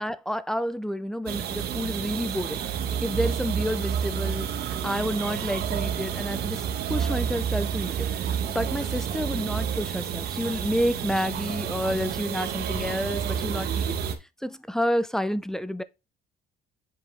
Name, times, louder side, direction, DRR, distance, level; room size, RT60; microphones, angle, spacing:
voice 1, 0.0-13.9 14.4-15.8, equal, 5° left, 0.6 m, -30 dB
sound 1, 1.3-14.2, right 8 dB, 70° right, 1.5 m, -29 dB
7.9 x 5.0 x 3.5 m
cardioid pair, 110°, 17 cm